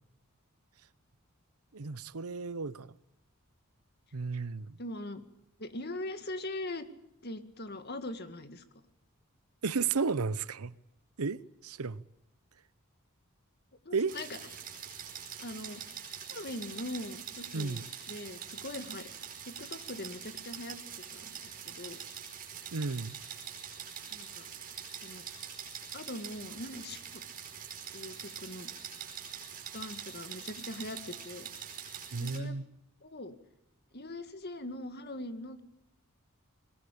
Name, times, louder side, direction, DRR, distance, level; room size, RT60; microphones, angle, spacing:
voice 1, 1.7-2.9 4.1-4.7 9.6-10.7 11.2-12.0 13.9-14.1 17.5-17.8 22.7-23.2 32.1-32.6, right 4 dB, 80° right, 0.9 m, -33 dB
voice 2, 4.8-5.2 5.6-6.9 7.2-8.6 13.9-14.4 15.4-15.8 16.3-19.1 19.5-20.8 21.1-21.3 21.7-22.0 24.1-24.5 25.0-25.3 25.9-27.2 27.9-28.7 29.7-31.5 32.2-32.6 33.0-33.4 33.9-35.6, left 1 dB, 45° left, 2.1 m, -41 dB
sound 1, 14.1-32.4, right 8 dB, 40° right, 5.0 m, -44 dB
21.5 x 20.0 x 8.6 m
head